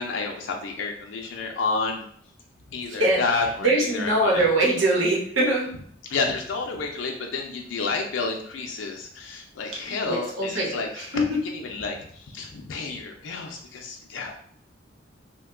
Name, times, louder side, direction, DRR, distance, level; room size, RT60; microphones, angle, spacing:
voice 1, 0.0-2.0 2.7-4.4 6.1-14.3, left 4 dB, 75° left, 1 dB, 0.4 m, -30 dB
voice 2, 3.6-5.7 9.7-10.8 11.1-11.4, right 1 dB, 85° right, -3 dB, 1.0 m, -22 dB
2.8 x 2.2 x 3.5 m, 0.62 s
head